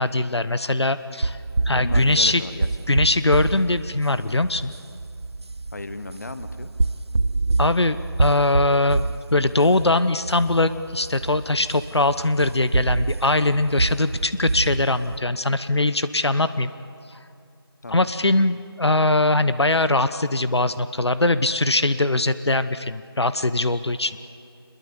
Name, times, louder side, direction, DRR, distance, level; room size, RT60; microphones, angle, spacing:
voice 1, 0.0-1.4 1.7-2.4 2.9-4.7 7.6-9.1 9.3-16.7 17.9-24.2, left 2 dB, 90° left, 13 dB, 1.0 m, -21 dB
sound 1, 1.2-15.2, right 3 dB, 80° right, 0.7 m, -27 dB
voice 2, 1.7-2.7 5.7-6.7 17.8-18.1, left 3 dB, 40° left, 11 dB, 1.2 m, -35 dB
27.5 x 22.0 x 7.0 m, 2.5 s
figure-of-eight pair, 170°, 13 cm